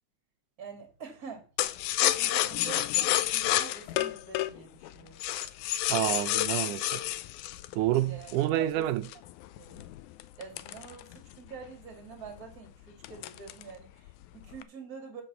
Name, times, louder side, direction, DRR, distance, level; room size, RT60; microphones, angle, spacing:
voice 1, 0.6-1.5 1.9-5.2 8.0-8.9 9.6-9.9 10.4-15.2, right 5 dB, 30° right, 2.4 m, -45 dB
sound 1, 1.6-8.5 9.0-11.5 11.9-12.0 12.3-12.6 13.0-13.8 14.1-14.6, left 14 dB, 80° left, 2.0 m, -29 dB
voice 2, 5.9-7.0 7.7-9.0, right 13 dB, 90° right, 2.2 m, -28 dB
7.2 x 6.8 x 6.9 m
omnidirectional pair, 3.5 m